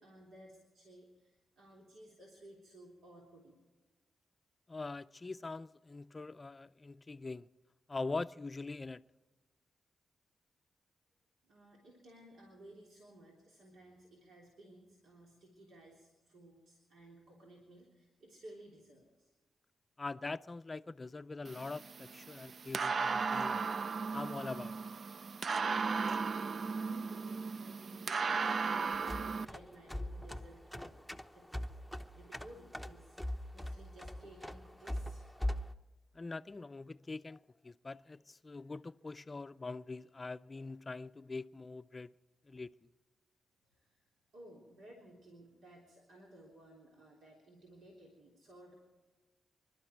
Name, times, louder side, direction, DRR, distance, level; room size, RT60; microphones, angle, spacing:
voice 1, 0.0-3.6 11.4-19.3 26.6-31.0 31.3-35.3 43.6-48.7, right 1 dB, 85° right, 3.4 m, -57 dB
voice 2, 4.7-7.5 7.9-9.0 20.0-23.7 24.1-25.0 36.1-42.1 42.4-42.9, left 3 dB, 30° left, 0.4 m, -43 dB
sound 1, 21.5-29.4, right 5 dB, 55° right, 0.4 m, -36 dB
sound 2, 28.9-35.7, left 1 dB, 5° right, 0.8 m, -41 dB
26.0 x 12.0 x 4.5 m
cardioid pair, 75°, 0 cm